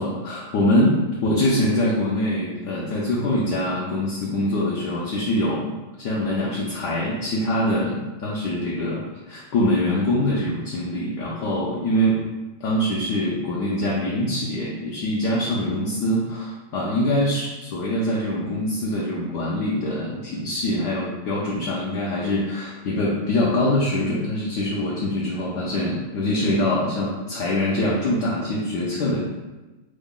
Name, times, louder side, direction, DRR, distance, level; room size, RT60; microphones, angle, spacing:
voice 1, 0.0-12.3 12.6-29.2, left 1 dB, 70° left, -5 dB, 1.0 m, -24 dB
3.8 x 2.1 x 3.6 m, 1.1 s
omnidirectional pair, 2.2 m